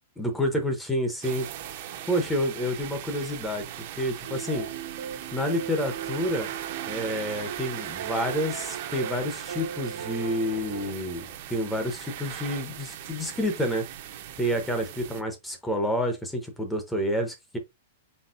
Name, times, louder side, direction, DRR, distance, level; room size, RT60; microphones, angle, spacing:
voice 1, 0.2-1.5 2.1-3.7 4.0-4.7 5.3-6.5 6.9-13.9 14.4-17.6, equal, 5° left, 0.6 m, -29 dB
sound 1, 1.2-15.2, right 11 dB, 40° right, 0.6 m, -39 dB
sound 2, 4.2-10.9, right 9 dB, 65° right, 0.8 m, -38 dB
4.2 x 4.0 x 2.4 m
supercardioid pair, 175°, 0 cm